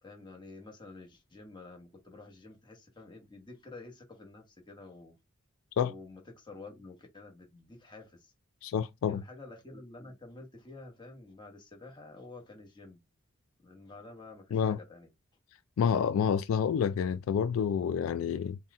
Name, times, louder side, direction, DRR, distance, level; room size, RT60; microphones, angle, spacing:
voice 1, 0.0-5.2 5.8-8.3 9.0-13.0 13.6-15.1, left 2 dB, 20° left, 1.1 m, -50 dB
voice 2, 8.6-9.2 14.5-14.8 15.8-18.6, left 7 dB, 80° left, 0.3 m, -28 dB
4.0 x 2.2 x 3.6 m
head